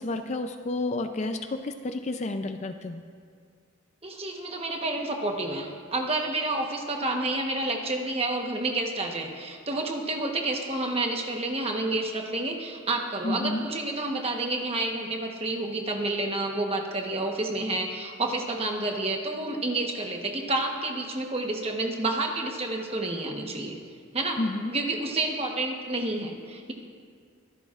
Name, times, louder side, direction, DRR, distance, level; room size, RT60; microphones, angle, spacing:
voice 1, 0.0-3.0 13.2-13.6 24.4-24.7, left 2 dB, 35° left, 7 dB, 0.4 m, -30 dB
voice 2, 4.0-23.8 24.1-24.4 24.6-26.7, right 2 dB, 30° right, 2 dB, 1.1 m, -29 dB
24.0 x 12.0 x 2.5 m, 2.2 s
head